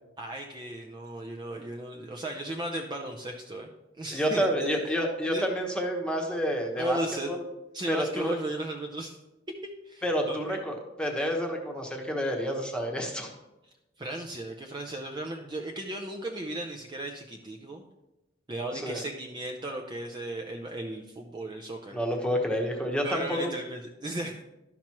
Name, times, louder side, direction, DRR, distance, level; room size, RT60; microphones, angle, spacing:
voice 1, 0.2-3.7 4.0-4.8 5.3-5.4 6.8-7.3 7.7-9.2 9.6-10.6 14.0-17.8 18.5-22.0 23.0-24.4, right 1 dB, 25° right, 2 dB, 0.5 m, -36 dB
voice 2, 4.1-7.0 7.2-7.4 7.9-8.4 10.0-13.3 18.7-19.0 21.9-23.4, equal, 5° left, 1 dB, 1.1 m, -29 dB
11.5 x 6.0 x 3.0 m, 0.97 s
head